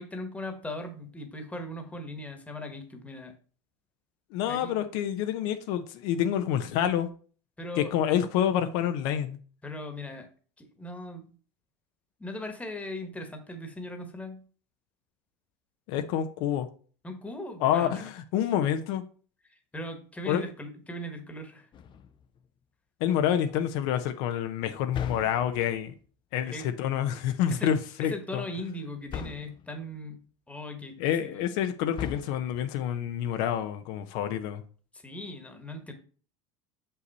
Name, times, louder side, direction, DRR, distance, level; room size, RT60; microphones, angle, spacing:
voice 1, 0.0-3.3 4.4-4.8 7.6-7.9 9.6-10.3 10.6-11.3 12.2-14.4 17.0-18.0 19.7-21.7 26.4-26.7 27.5-30.2 30.5-31.0 31.2-31.4 35.0-35.9, left 1 dB, 10° left, 1.4 m, -39 dB
voice 2, 4.3-7.1 7.8-9.4 15.9-16.7 17.6-19.0 20.3-20.4 23.0-25.9 26.3-28.4 31.0-34.6, left 10 dB, 70° left, 0.8 m, -28 dB
sound 1, 21.7-22.4 24.9-25.8 29.1-29.7 31.9-32.8, left 8 dB, 35° left, 0.6 m, -39 dB
6.6 x 5.6 x 4.1 m
supercardioid pair, 115°, 14 cm